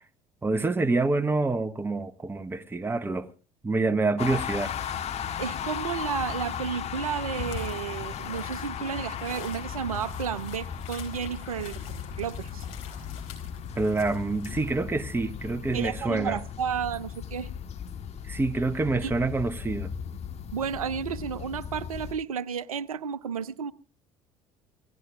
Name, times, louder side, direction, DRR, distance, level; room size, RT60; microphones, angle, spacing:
voice 1, 0.4-3.3 3.6-4.7 13.8-16.4 18.3-19.9, right 3 dB, 10° right, 0.8 m, -27 dB
sound 1, 4.2-22.1, left 8 dB, 35° left, 1.6 m, -36 dB
voice 2, 5.4-12.7 15.7-17.5 19.0-19.1 20.5-23.7, right 7 dB, 75° right, 0.7 m, -32 dB
sound 2, 7.2-14.7, left 6 dB, 65° left, 4.0 m, -42 dB
28.0 x 17.5 x 2.5 m
figure-of-eight pair, 60°, 18 cm